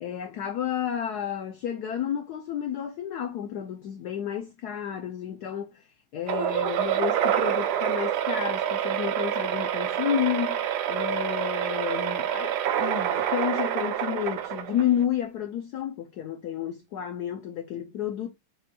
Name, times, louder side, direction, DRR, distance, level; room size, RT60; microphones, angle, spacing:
voice 1, 0.0-5.9 6.1-18.3, left 10 dB, 85° left, 0.8 m, -31 dB
sound 1, 6.3-15.0, right 10 dB, 75° right, 0.9 m, -27 dB
6.0 x 2.2 x 2.7 m
omnidirectional pair, 2.3 m